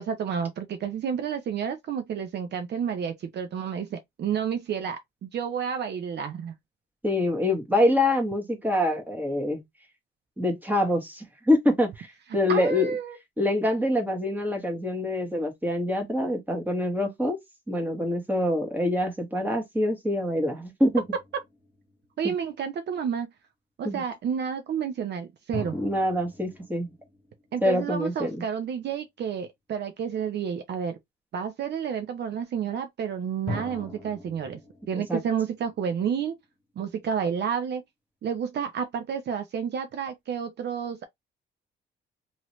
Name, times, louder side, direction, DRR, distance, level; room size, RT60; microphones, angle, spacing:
voice 1, 0.0-6.5 12.5-13.2 22.2-23.3 23.8-25.8 27.5-31.0 31.3-34.6 34.9-36.4 36.8-37.8 38.2-41.1, right 7 dB, 60° right, 0.7 m, -30 dB
voice 2, 7.0-9.6 10.4-12.1 12.3-12.9 13.4-17.4 17.7-21.0 23.8-24.0 25.7-26.9 27.6-28.4 35.1-35.2, left 1 dB, 10° right, 1.4 m, -25 dB
sound 1, 20.9-22.6 25.5-28.2 33.5-36.5, left 1 dB, 20° left, 1.5 m, -41 dB
2.9 x 2.8 x 3.1 m
cardioid pair, 90°, 20 cm